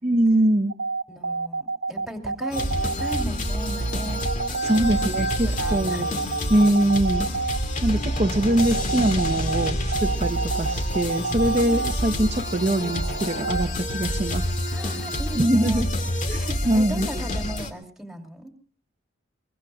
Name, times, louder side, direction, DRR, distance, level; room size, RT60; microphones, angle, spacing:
voice 1, 0.0-0.7 4.6-6.1 6.5-7.3 7.8-14.5 15.4-15.9 16.3-17.1, right 1 dB, 30° right, 3 dB, 0.9 m, -23 dB
sound 1, 0.7-13.7, right 4 dB, 70° right, 1.0 m, -29 dB
voice 2, 1.1-4.2 4.6-5.1 5.4-6.1 14.7-15.9 16.3-18.5, right 1 dB, ahead, 2 dB, 2.7 m, -37 dB
sound 2, 2.5-17.7, left 1 dB, 35° left, 2.3 m, -28 dB
23.5 x 23.0 x 2.4 m, 0.42 s
head